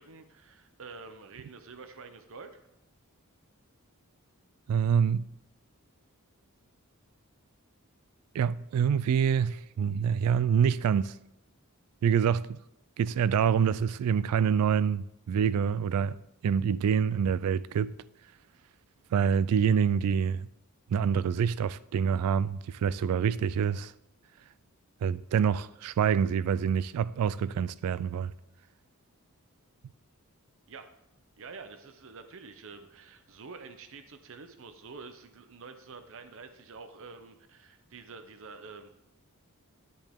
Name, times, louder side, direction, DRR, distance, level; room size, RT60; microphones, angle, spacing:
voice 1, 0.0-2.7 30.7-30.9 31.4-38.9, right 4 dB, 60° right, 0.7 m, -47 dB
voice 2, 4.7-5.3 8.3-11.1 12.0-12.6 13.0-16.2 16.4-17.9 19.1-20.5 20.9-23.9 25.0-28.3, right 7 dB, 80° right, 0.3 m, -26 dB
10.5 x 10.0 x 3.6 m
head